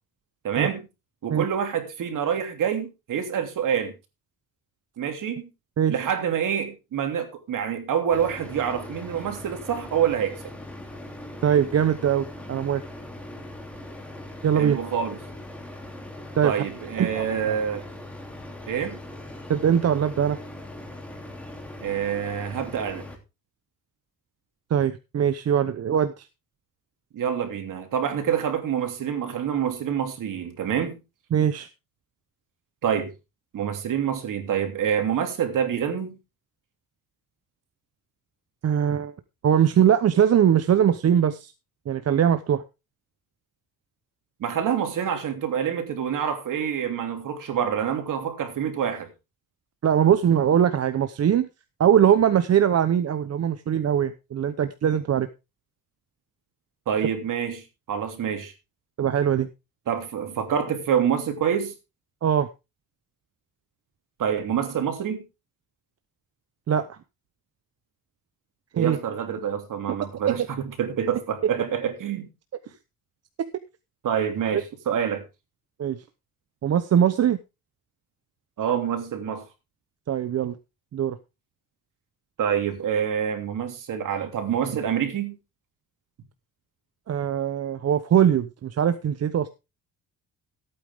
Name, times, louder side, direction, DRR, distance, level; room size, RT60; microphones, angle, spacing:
voice 1, 0.4-0.9 1.2-3.9 5.0-5.5 5.9-10.4 14.6-15.2 16.4-17.8 18.7-19.0 21.8-23.0 27.1-31.0 32.8-33.1 33.5-36.2 44.4-49.1 56.9-58.5 59.9-61.7 64.2-65.2 68.7-70.4 70.8-72.3 74.0-75.2 78.6-79.4 82.4-85.4, right 8 dB, 60° right, 3.1 m, -26 dB
sound 1, 8.1-23.1, left 1 dB, 5° left, 2.9 m, -40 dB
voice 2, 11.4-12.8 14.4-14.8 16.4-16.5 17.0-17.5 19.5-20.4 24.7-26.3 31.3-31.7 38.6-39.1 39.4-41.5 41.9-42.6 49.8-51.5 51.8-55.3 59.0-59.5 62.2-62.5 66.7-67.0 68.8-69.0 70.3-70.4 75.8-76.0 76.6-77.4 80.1-80.6 80.9-81.2 87.1-89.5, right 9 dB, 45° right, 0.9 m, -21 dB
15.5 x 8.9 x 3.6 m
cardioid pair, 120°, 35 cm